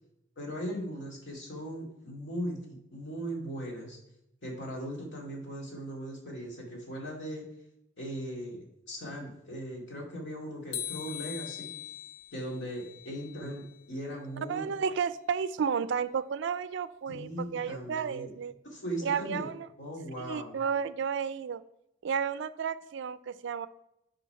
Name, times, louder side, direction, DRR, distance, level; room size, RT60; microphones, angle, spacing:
voice 1, 0.4-4.0 4.4-7.5 8.0-11.7 12.3-14.7 17.1-18.3 18.6-19.5 19.8-20.5, equal, 60° left, -2 dB, 2.4 m, -38 dB
sound 1, 10.7-13.8, left 10 dB, 80° left, 0.6 m, -41 dB
voice 2, 14.5-18.5 19.0-19.7 20.2-21.6 22.0-23.7, right 6 dB, 65° right, 15 dB, 0.4 m, -32 dB
8.2 x 3.9 x 5.7 m, 0.83 s
head